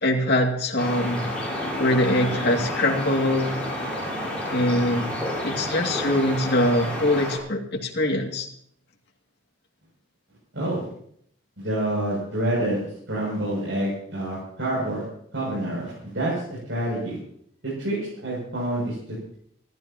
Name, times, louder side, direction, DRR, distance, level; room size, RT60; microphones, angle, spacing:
voice 1, 0.0-1.3 1.8-3.6 4.5-5.1 5.4-8.5, left 1 dB, 55° left, 0 dB, 2.6 m, -23 dB
sound 1, 0.8-7.4, left 1 dB, 5° left, 6.5 m, -30 dB
voice 2, 1.2-1.7 10.5-10.9 11.6-15.0 15.3-17.2 17.6-19.4, right 1 dB, 65° right, -6 dB, 7.4 m, -28 dB
28.5 x 13.5 x 3.0 m, 0.67 s
head